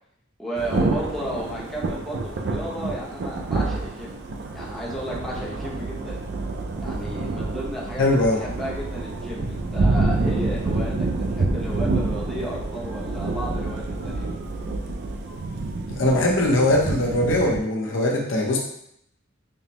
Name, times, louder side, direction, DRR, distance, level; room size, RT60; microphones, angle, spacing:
voice 1, 0.4-4.2 4.5-6.2 6.8-14.3, equal, ahead, -7 dB, 0.8 m, -33 dB
Thunder / Rain, 0.6-17.6, right 3 dB, 55° right, 0.4 m, -27 dB
voice 2, 8.0-8.4 15.9-18.6, left 1 dB, 70° left, -1 dB, 0.7 m, -21 dB
5.3 x 2.0 x 2.9 m, 0.74 s
head